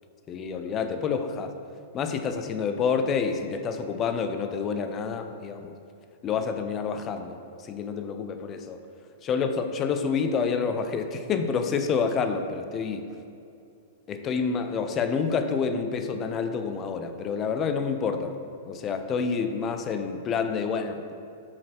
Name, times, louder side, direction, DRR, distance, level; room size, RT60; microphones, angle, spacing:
voice 1, 0.3-1.5 1.9-5.8 6.2-8.8 9.2-13.1 14.1-18.3 18.7-21.1, left 5 dB, 30° left, 7 dB, 0.5 m, -28 dB
5.1 x 4.2 x 6.0 m, 2.5 s
figure-of-eight pair, 105°, 0 cm